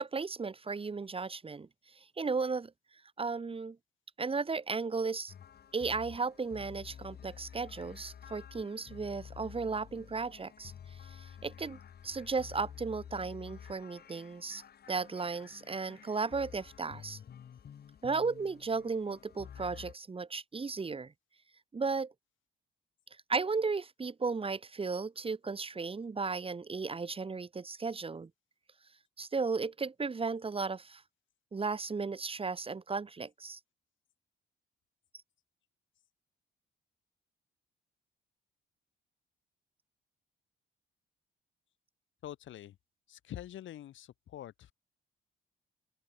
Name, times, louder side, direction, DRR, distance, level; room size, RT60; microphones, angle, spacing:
voice 1, 0.0-1.7 1.9-2.7 3.2-3.8 4.2-5.3 5.7-10.7 11.1-11.8 12.0-14.6 14.9-17.2 18.0-21.1 21.7-22.1 23.3-28.3 29.2-31.0 31.5-33.6, right 4 dB, 30° right, 1.5 m, -35 dB
sound 1, 5.3-19.9, left 8 dB, 55° left, 1.9 m, -51 dB
voice 2, 42.2-42.8 43.1-44.7, left 12 dB, 75° left, 4.7 m, -45 dB
open air
cardioid pair, 90°, 20 cm